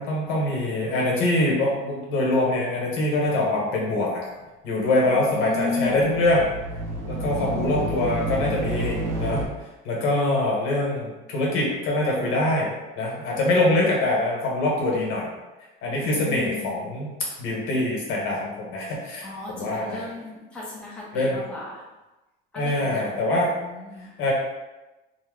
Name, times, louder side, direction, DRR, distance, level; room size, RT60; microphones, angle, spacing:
voice 1, 0.0-4.2 4.6-6.4 7.1-9.4 9.8-15.3 15.8-17.1 17.4-19.3 19.5-20.0 21.1-21.4 22.5-23.5 24.2-24.3, left 2 dB, 75° left, -3 dB, 1.0 m, -24 dB
voice 2, 5.0-6.1 7.3-8.1 15.9-16.7 19.2-21.9 22.5-24.1, left 3 dB, 5° left, -6 dB, 0.4 m, -35 dB
sound 1, 5.9-9.4, right 1 dB, 80° right, 0.7 m, -30 dB
2.8 x 2.0 x 3.6 m, 1.1 s
cardioid pair, 175°, 21 cm